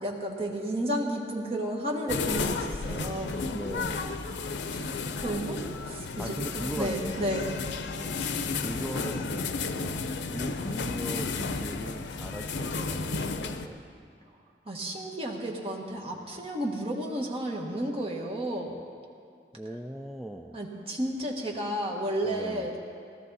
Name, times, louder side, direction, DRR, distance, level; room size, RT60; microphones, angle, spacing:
voice 1, 0.0-3.4 4.7-4.9 5.2-7.5 14.7-18.8 20.5-22.8, right 1 dB, 35° right, -1 dB, 1.4 m, -32 dB
sound 1, 2.1-13.7, left 4 dB, 85° left, 0.6 m, -32 dB
voice 2, 3.5-4.2 6.2-7.3 8.6-9.3 10.3-13.8 19.5-20.6 22.3-22.7, equal, ahead, 2 dB, 0.3 m, -39 dB
16.5 x 13.0 x 4.1 m, 2.3 s
head